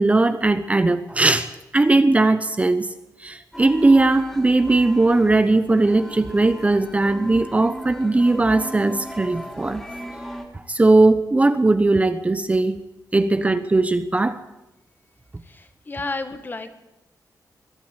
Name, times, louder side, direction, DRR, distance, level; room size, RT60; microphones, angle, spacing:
voice 1, 0.0-2.9 3.2-9.8 10.5-12.8 13.1-14.4, right 2 dB, 20° right, 11 dB, 0.9 m, -19 dB
sound 1, 3.5-10.5, equal, 5° left, 3.1 m, -38 dB
voice 2, 15.9-16.8, left 3 dB, 30° left, 9 dB, 1.8 m, -30 dB
22.0 x 12.0 x 9.8 m, 0.94 s
wide cardioid pair, 135°, 7 cm